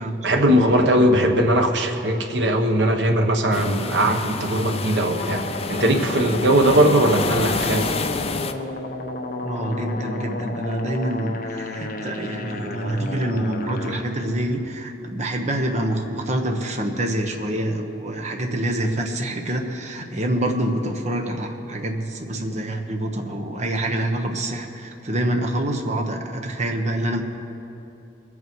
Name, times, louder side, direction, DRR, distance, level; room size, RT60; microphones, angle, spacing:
voice 1, 0.2-8.0, right 1 dB, 75° right, 3 dB, 1.2 m, -19 dB
sound 1, 3.5-8.5, left 4 dB, 35° left, 0.5 m, -29 dB
sound 2, 5.2-14.0, left 2 dB, 55° left, 1.0 m, -32 dB
voice 2, 9.4-27.2, right 1 dB, 40° right, 3 dB, 1.2 m, -26 dB
22.0 x 8.4 x 4.6 m, 2.9 s
head